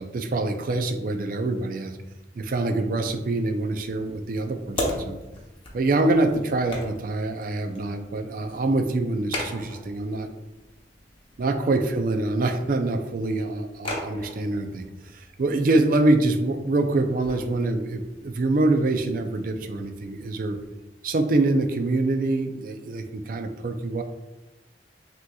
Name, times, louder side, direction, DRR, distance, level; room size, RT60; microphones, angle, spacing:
voice 1, 0.0-2.0 2.3-5.2 5.7-10.3 11.4-14.9 15.1-20.6 21.0-24.0, right 2 dB, 50° right, 6 dB, 0.4 m, -25 dB
sound 1, 3.1-20.7, left 1 dB, 30° left, 0.8 m, -39 dB
6.0 x 2.9 x 2.3 m, 1.0 s
head